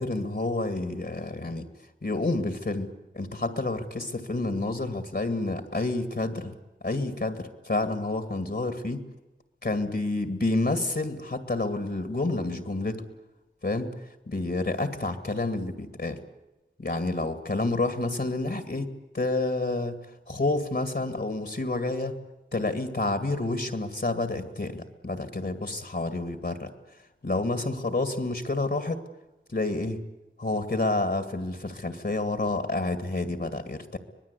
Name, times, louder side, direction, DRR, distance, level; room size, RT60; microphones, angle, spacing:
voice 1, 0.0-1.6 2.0-2.9 3.1-6.5 6.8-9.0 9.6-13.0 13.6-13.9 14.3-16.2 16.8-18.9 19.1-20.0 20.3-22.2 22.5-26.7 27.2-29.0 29.5-30.0 30.4-34.0, left 2 dB, 60° left, 9 dB, 2.2 m, -29 dB
25.0 x 20.5 x 8.3 m, 1.0 s
wide cardioid pair, 55°, 20 cm